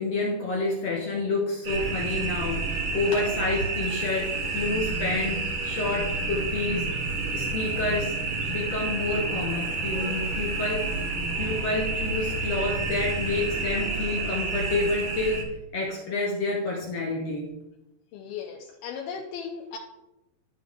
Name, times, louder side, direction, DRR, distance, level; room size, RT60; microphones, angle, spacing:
voice 1, 0.0-6.9 7.3-8.2 8.5-10.9 11.4-15.4 15.7-17.5, left 2 dB, 60° left, -2 dB, 1.8 m, -29 dB
sound 1, 1.6-15.4, right 3 dB, 65° right, 1.3 m, -29 dB
voice 2, 18.1-19.8, left 7 dB, 90° left, -1 dB, 2.7 m, -36 dB
13.0 x 5.1 x 3.6 m, 0.91 s
omnidirectional pair, 4.2 m